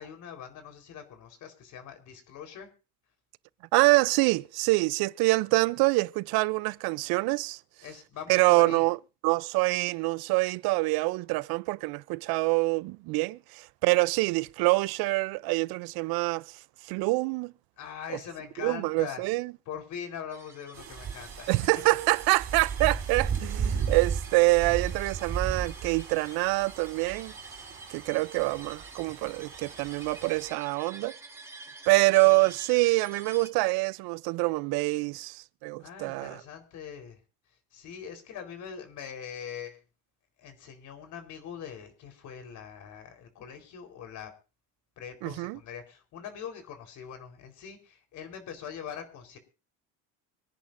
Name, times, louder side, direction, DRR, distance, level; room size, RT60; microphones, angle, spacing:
voice 1, 0.0-2.7 7.8-8.8 17.8-19.2 19.7-21.5 32.3-32.5 35.8-37.2 37.7-39.8 40.4-44.3 45.0-49.4, left 8 dB, 55° left, 4.1 m, -42 dB
voice 2, 3.7-7.6 8.3-9.0 9.2-16.6 16.8-17.5 18.6-19.5 21.5-27.3 27.9-31.1 31.9-36.4 45.2-45.6, right 24 dB, 80° right, 0.5 m, -25 dB
sound 1, 20.3-33.5, right 3 dB, 5° right, 1.7 m, -49 dB
sound 2, 20.7-30.5, right 6 dB, 35° right, 3.9 m, -35 dB
25.5 x 10.5 x 2.6 m
cardioid pair, 160°, 36 cm